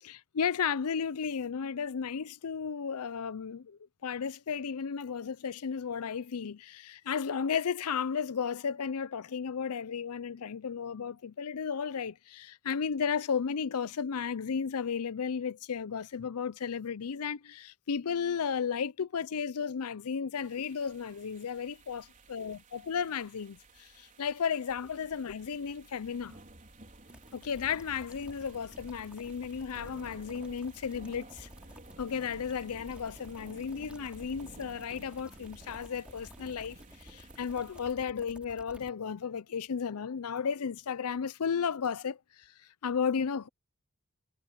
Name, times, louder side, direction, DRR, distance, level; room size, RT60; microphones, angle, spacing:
voice 1, 0.0-26.4 27.3-31.5 32.0-42.5 42.8-43.5, left 6 dB, 75° left, 0.5 m, -34 dB
sound 1, 20.4-38.0, right 1 dB, 35° right, 4.5 m, -53 dB
sound 2, 27.1-38.9, equal, 5° right, 2.7 m, -54 dB
head